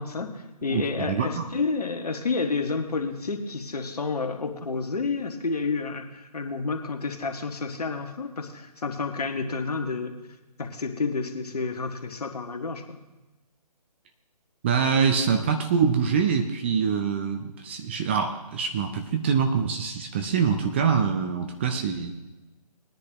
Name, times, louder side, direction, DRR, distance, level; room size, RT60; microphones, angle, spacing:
voice 1, 0.0-10.1 10.6-13.0, left 4 dB, 65° left, 4 dB, 1.6 m, -30 dB
voice 2, 0.7-1.5 14.6-22.2, right 6 dB, 15° right, 6 dB, 0.5 m, -25 dB
20.0 x 10.0 x 2.9 m, 1.1 s
figure-of-eight pair, 145°, 21 cm